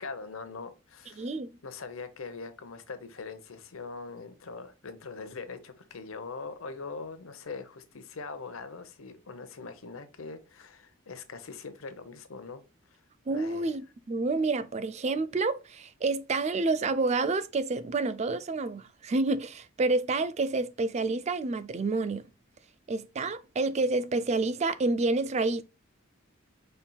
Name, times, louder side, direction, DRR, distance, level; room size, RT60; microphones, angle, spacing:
voice 1, 0.0-1.3 1.6-12.6 12.9-13.0 13.3-13.7, left 4 dB, 85° left, 0.8 m, -42 dB
voice 2, 1.2-1.5 13.3-22.2 22.9-25.6, right 3 dB, 30° right, 0.4 m, -29 dB
5.4 x 4.4 x 2.2 m
head